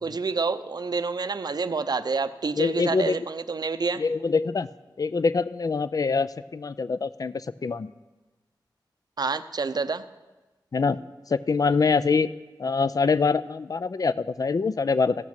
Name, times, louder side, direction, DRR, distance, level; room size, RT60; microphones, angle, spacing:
voice 1, 0.0-4.0 9.2-10.0, right 4 dB, 55° right, 12 dB, 0.5 m, -28 dB
voice 2, 2.6-3.2 4.0-4.7 5.0-7.9 10.7-11.0 11.3-12.3 12.6-15.1, left 4 dB, 50° left, 16 dB, 0.4 m, -24 dB
15.0 x 6.0 x 5.9 m, 1.2 s
cardioid pair, 50°, 8 cm